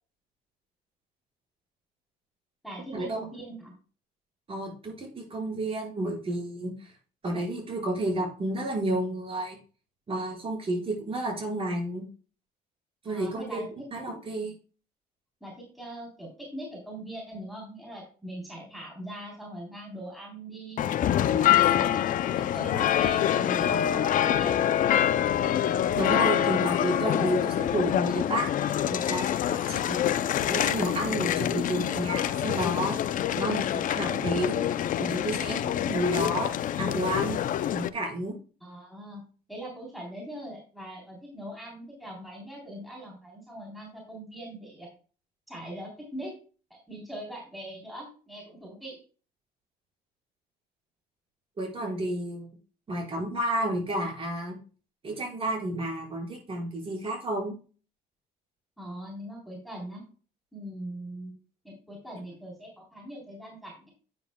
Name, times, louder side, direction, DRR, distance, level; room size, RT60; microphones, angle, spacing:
voice 1, 2.6-3.7 13.0-14.2 15.4-20.9 21.2-24.7 38.6-39.2 39.5-44.9 45.5-46.3 46.7-49.0 58.8-60.0 60.5-61.3 61.6-63.9, right 1 dB, ahead, -3 dB, 3.7 m, -41 dB
voice 2, 4.5-6.7 7.2-9.6 10.1-12.0 13.0-13.7 13.9-14.5 26.0-30.0 30.4-33.0 33.3-34.6 35.0-37.4 37.7-38.3 51.6-52.5 52.9-54.5 55.0-57.5, right 1 dB, 35° right, -1 dB, 5.2 m, -31 dB
sound 1, 20.8-37.9, left 11 dB, 55° left, 0.5 m, -26 dB
9.7 x 9.2 x 2.3 m, 0.37 s
cardioid pair, 110°, 17 cm